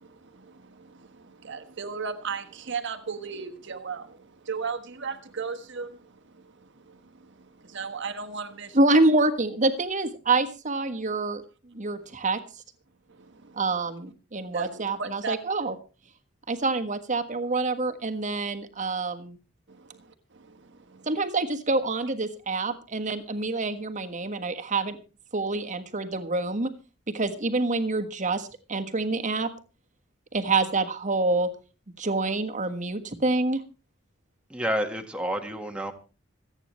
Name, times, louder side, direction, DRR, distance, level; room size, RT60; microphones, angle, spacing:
voice 1, 1.5-4.0 4.5-5.9 7.7-8.7 14.5-15.3, right 5 dB, 65° right, 1.4 m, -34 dB
voice 2, 8.7-11.4 11.7-12.4 13.5-15.7 16.5-19.4 21.1-25.0 25.3-26.7 27.1-29.5 30.3-31.5 32.0-33.6, right 2 dB, 40° right, 1.5 m, -26 dB
voice 3, 34.5-35.9, equal, 5° right, 1.5 m, -29 dB
26.0 x 8.9 x 3.1 m
head